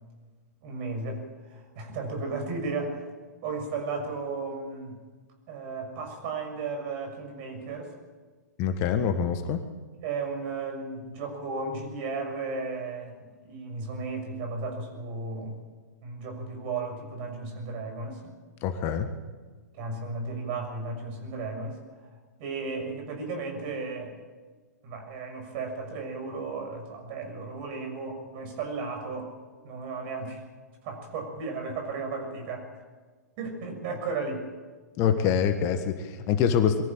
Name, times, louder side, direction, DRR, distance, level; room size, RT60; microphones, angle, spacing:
voice 1, 0.6-3.0 3.4-4.9 5.5-7.9 10.0-15.6 16.0-18.3 19.7-22.1 22.4-24.2 24.8-29.3 29.6-30.4 30.8-32.7 33.4-34.5, right 3 dB, 40° right, 4 dB, 6.5 m, -34 dB
voice 2, 8.6-9.6 18.6-19.1 35.0-36.8, left 8 dB, 30° left, 8 dB, 1.5 m, -25 dB
23.0 x 15.0 x 8.9 m, 1.4 s
figure-of-eight pair, 115°, 9 cm